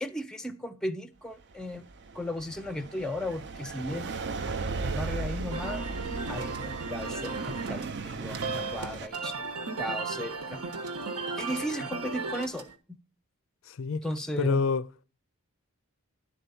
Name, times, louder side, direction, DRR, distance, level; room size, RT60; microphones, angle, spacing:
voice 1, 0.0-1.9 2.1-4.2 4.8-5.8 6.3-9.4 9.8-10.6 11.4-12.7 14.0-14.6, left 1 dB, 5° left, 0.5 m, -35 dB
sound 1, 1.5-9.1, right 4 dB, 50° right, 0.5 m, -36 dB
sound 2, 5.5-12.7, right 3 dB, 85° right, 1.1 m, -36 dB
voice 2, 13.7-14.0 14.4-14.9, left 5 dB, 60° left, 0.4 m, -27 dB
11.0 x 4.4 x 6.8 m
head